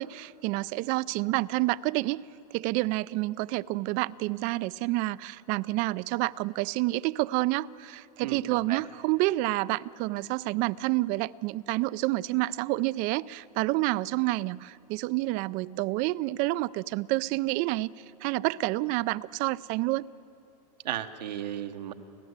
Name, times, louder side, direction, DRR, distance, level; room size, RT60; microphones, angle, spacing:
voice 1, 0.0-2.2 2.5-17.9 18.2-20.1, right 19 dB, 40° right, 0.4 m, -28 dB
voice 2, 8.2-8.8 20.8-21.9, right 11 dB, 85° right, 1.1 m, -35 dB
29.5 x 12.0 x 8.1 m
hypercardioid pair, 125°, 21 cm